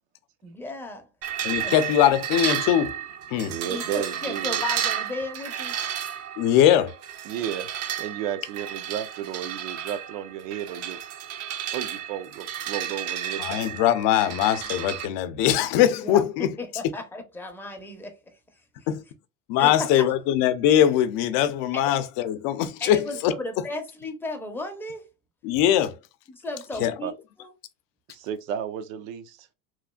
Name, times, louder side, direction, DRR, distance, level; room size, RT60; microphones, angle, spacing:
voice 1, 0.4-1.1 1.6-1.8 3.7-5.7 7.4-7.5 16.0-18.6 19.6-19.9 21.7-21.8 22.8-25.0 26.3-27.5, left 2 dB, 5° left, 0.5 m, -35 dB
sound 1, 1.2-15.1, right 10 dB, 40° right, 0.5 m, -32 dB
voice 2, 1.4-3.0 3.3-3.6 6.4-6.9 13.4-16.6 18.9-19.0 19.5-23.3 25.4-26.0 26.8-26.9, left 11 dB, 60° left, 0.5 m, -21 dB
voice 3, 3.4-4.6 7.3-7.7 8.0-11.0 11.7-13.4 27.0-27.1 28.1-29.5, right 10 dB, 90° right, 0.6 m, -33 dB
3.1 x 2.4 x 2.2 m
supercardioid pair, 120°, 38 cm